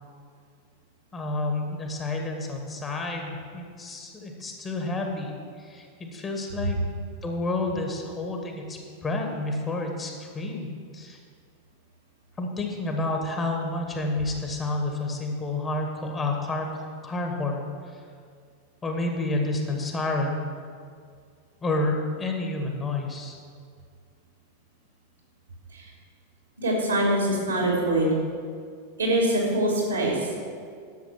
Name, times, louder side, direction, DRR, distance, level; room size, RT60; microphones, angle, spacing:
voice 1, 1.1-6.8 7.2-10.7 10.9-11.2 12.4-18.0 18.8-20.4 21.6-23.4, left 2 dB, 20° left, 2 dB, 1.5 m, -30 dB
voice 2, 26.6-28.1 29.0-30.1, right 1 dB, 75° right, -2 dB, 3.1 m, -23 dB
10.5 x 7.1 x 5.9 m, 2.1 s
figure-of-eight pair, 90°, 0 cm